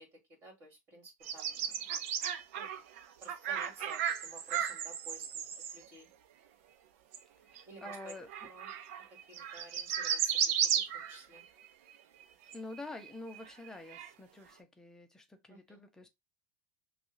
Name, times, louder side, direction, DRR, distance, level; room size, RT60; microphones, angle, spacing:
voice 1, 0.0-1.9 2.5-2.7 3.2-5.4 5.7-6.1 7.7-8.1 8.4-8.7 9.3-11.5 15.5-15.8, right 1 dB, 30° right, 2.6 m, -54 dB
sound 1, 1.2-5.8 7.1-7.2 7.5-11.7 12.2-12.3 12.5-14.1, right 8 dB, 65° right, 0.7 m, -35 dB
voice 2, 7.4-8.3 12.5-16.1, left 2 dB, 5° left, 0.8 m, -47 dB
6.0 x 2.4 x 2.7 m
supercardioid pair, 145°, 8 cm